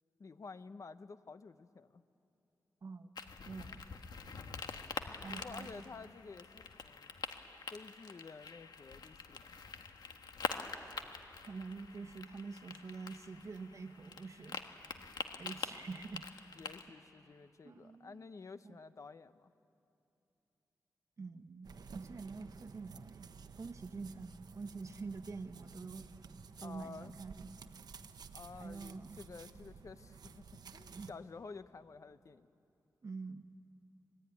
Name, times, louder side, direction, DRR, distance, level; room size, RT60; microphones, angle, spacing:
voice 1, 0.2-2.0 5.3-7.1 7.7-9.6 16.6-19.5 26.6-27.2 28.3-30.5 30.7-32.5, left 4 dB, 50° left, 12 dB, 0.8 m, -51 dB
voice 2, 2.8-3.1 3.5-3.8 5.2-5.8 11.5-14.6 15.4-16.3 17.6-18.2 18.6-18.8 21.2-23.3 23.6-26.1 26.6-27.5 28.6-29.2 30.9-31.1 33.0-33.5, right 4 dB, 50° right, 9 dB, 1.2 m, -46 dB
sound 1, 3.2-16.8, left 5 dB, 80° left, 1.4 m, -45 dB
sound 2, 21.6-31.1, right 5 dB, 75° right, 0.9 m, -53 dB
26.5 x 21.5 x 9.5 m, 2.9 s
wide cardioid pair, 145°, 7 cm